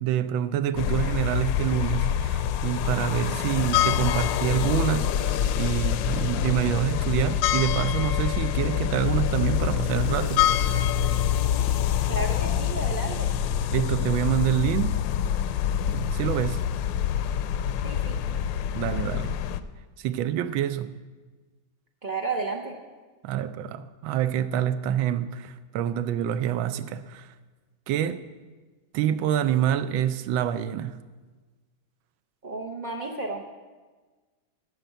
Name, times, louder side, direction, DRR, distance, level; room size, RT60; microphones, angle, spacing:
voice 1, 0.0-10.9 13.7-15.0 15.9-16.6 18.7-19.4 20.0-20.9 23.2-27.3 27.9-28.2 28.9-31.0, right 10 dB, 85° right, 1.4 m, -27 dB
sound 1, 0.8-19.6, left 9 dB, 75° left, 1.2 m, -26 dB
voice 2, 12.1-13.3 17.8-18.3 22.0-22.7 32.4-33.4, right 3 dB, 65° right, 0.4 m, -32 dB
10.0 x 7.3 x 8.0 m
omnidirectional pair, 2.1 m